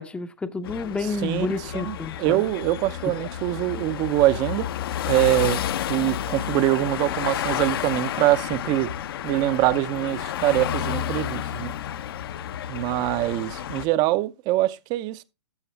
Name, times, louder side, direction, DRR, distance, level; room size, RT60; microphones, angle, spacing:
voice 1, 0.0-2.4 3.1-3.2, left 4 dB, 5° left, 0.7 m, -30 dB
sound 1, 0.6-13.9, left 10 dB, 55° left, 0.8 m, -31 dB
voice 2, 1.7-4.7 5.1-5.6 5.9-8.9 9.2-11.7 12.7-15.2, right 16 dB, 30° right, 0.6 m, -24 dB
13.0 x 7.0 x 3.3 m
hypercardioid pair, 125°, 14 cm